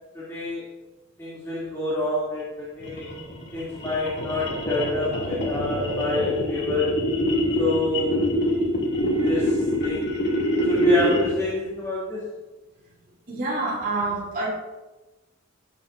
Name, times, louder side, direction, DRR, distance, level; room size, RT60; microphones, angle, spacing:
voice 1, 0.1-0.7 1.2-3.1 3.5-7.0 7.6-8.3 9.2-10.3 10.7-12.2, left 1 dB, 15° left, -8 dB, 2.6 m, -27 dB
sound 1, 2.8-11.5, left 1 dB, 60° left, 2.4 m, -25 dB
voice 2, 13.3-14.5, right 2 dB, 45° right, -5 dB, 2.6 m, -27 dB
18.0 x 7.2 x 2.6 m, 1.1 s
head